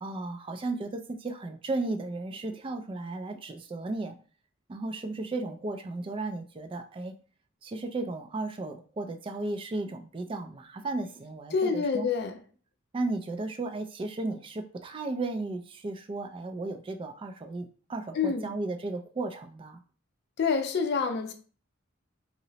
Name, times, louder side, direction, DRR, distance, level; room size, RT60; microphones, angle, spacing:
voice 1, 0.0-4.1 4.7-7.1 7.6-12.1 12.9-19.8, right 2 dB, 25° right, 0.3 m, -34 dB
voice 2, 11.5-12.4 18.1-18.5 20.4-21.3, left 5 dB, 55° left, 0.4 m, -27 dB
2.8 x 2.0 x 3.8 m
head